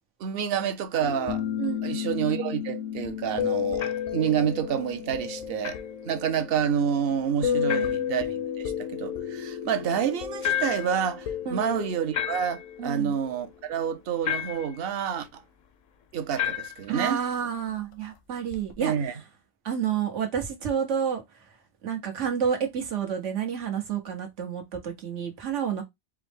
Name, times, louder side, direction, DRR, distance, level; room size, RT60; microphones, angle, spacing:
voice 1, 0.2-1.4 1.8-5.8 6.0-15.4 16.1-17.2 18.8-19.1, right 8 dB, 60° right, 0.7 m, -28 dB
sound 1, 1.0-14.2 18.5-18.7, left 9 dB, 90° left, 1.0 m, -33 dB
voice 2, 1.6-2.1 7.4-7.9 11.5-11.7 12.8-13.1 16.9-18.9 19.6-21.2 21.8-25.8, right 8 dB, 90° right, 1.4 m, -30 dB
sound 2, 3.8-4.1 5.6-5.9 7.7-8.1 10.4-11.0 12.1-12.7 14.2-14.8 16.4-16.9, left 11 dB, 60° left, 0.4 m, -31 dB
4.5 x 2.0 x 3.4 m
omnidirectional pair, 1.2 m